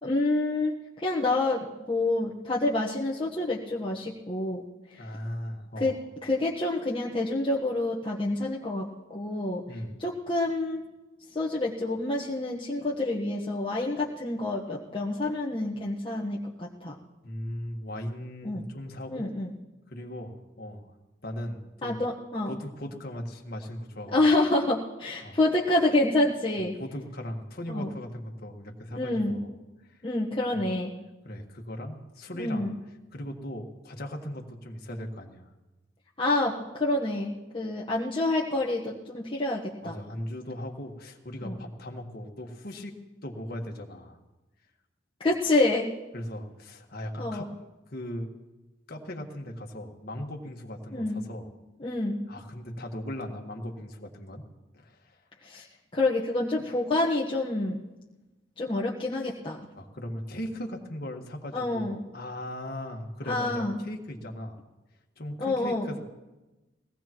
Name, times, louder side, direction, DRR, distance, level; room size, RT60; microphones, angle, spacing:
voice 1, 0.0-5.1 5.8-5.9 6.2-8.9 9.1-9.6 10.0-10.8 11.3-16.9 18.4-18.6 19.1-19.5 21.8-22.5 24.1-26.7 27.7-27.9 28.9-29.4 30.0-30.9 32.4-32.8 36.2-40.0 41.4-41.6 45.2-45.9 47.2-47.5 50.9-51.2 51.8-52.2 55.4-55.7 55.9-57.8 58.6-59.6 61.5-62.0 63.2-63.8 65.4-65.9, left 2 dB, 25° left, -4 dB, 1.2 m, -28 dB
voice 2, 5.0-6.0 9.7-9.9 17.2-19.3 19.9-20.9 21.2-22.0 22.5-24.2 25.2-25.4 26.8-29.5 29.9-30.0 30.5-30.6 31.2-32.7 33.1-35.5 39.8-43.0 43.2-44.2 46.1-47.5 47.9-48.3 48.9-51.5 52.3-54.5 54.7-55.2 59.7-64.6 65.2-66.0, left 1 dB, 55° left, 2 dB, 1.6 m, -38 dB
22.0 x 17.5 x 3.1 m, 1.1 s
head